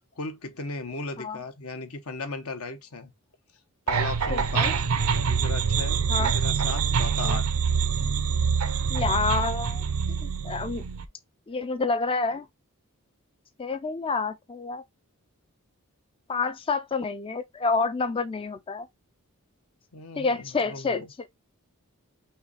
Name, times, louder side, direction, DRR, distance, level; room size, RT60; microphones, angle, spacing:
voice 1, 0.2-3.1 3.9-4.7 5.3-7.5 19.9-21.1, left 3 dB, 75° left, 1.0 m, -36 dB
sound 1, 3.9-11.0, right 6 dB, 75° right, 0.6 m, -25 dB
voice 2, 4.3-4.7 6.1-6.3 7.2-7.4 8.9-9.8 10.2-10.8 11.5-12.4 13.6-14.8 16.3-18.9 20.2-21.0, left 4 dB, 25° left, 0.3 m, -28 dB
5.6 x 2.3 x 4.0 m
head